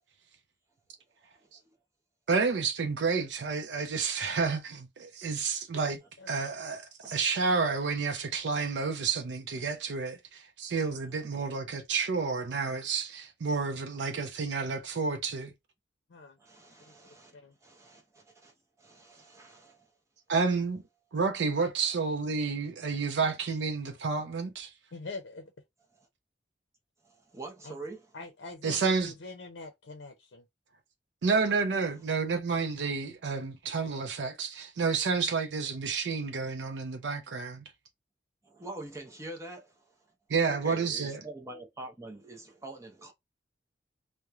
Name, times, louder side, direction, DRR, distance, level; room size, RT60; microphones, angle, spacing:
voice 1, 1.3-1.8 7.0-7.2 11.1-11.4 14.1-14.3 16.4-19.9 26.0-26.1 27.0-28.1 38.4-40.0 40.4-43.1, right 2 dB, 15° right, 0.6 m, -46 dB
voice 2, 2.3-6.0 6.3-15.5 20.3-20.8 21.1-24.7 28.6-29.1 31.2-37.6 40.3-41.2, right 4 dB, 75° right, 0.5 m, -30 dB
voice 3, 6.2-6.5 16.1-16.4 16.8-17.5 24.9-25.5 27.6-27.8 28.1-30.5, left 3 dB, 85° left, 0.5 m, -44 dB
2.9 x 2.1 x 2.3 m
head